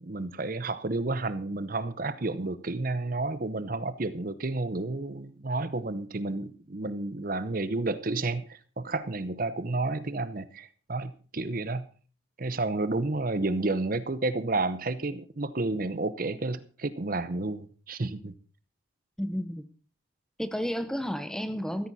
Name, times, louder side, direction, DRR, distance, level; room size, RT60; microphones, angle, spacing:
voice 1, 0.0-11.9 12.4-18.3, right 2 dB, 45° right, 14 dB, 0.8 m, -31 dB
voice 2, 19.2-19.6 20.4-21.9, equal, 5° left, 11 dB, 0.8 m, -31 dB
14.5 x 13.5 x 4.1 m, 0.39 s
head